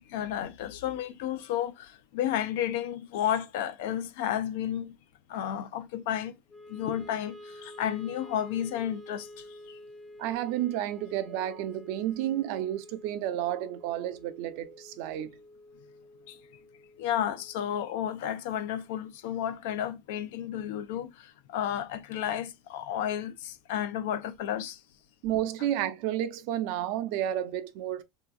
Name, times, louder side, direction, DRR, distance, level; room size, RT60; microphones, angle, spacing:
voice 1, 0.1-5.0 5.3-6.4 6.7-9.8 16.3-16.4 17.0-24.8, left 10 dB, 85° left, 0.6 m, -32 dB
Wind instrument woodwind instrument, 6.5-18.7, left 1 dB, 10° left, 0.4 m, -50 dB
voice 2, 10.2-15.3 25.2-28.0, right 12 dB, 65° right, 0.6 m, -31 dB
3.5 x 2.8 x 2.4 m
cardioid pair, 165°, 0 cm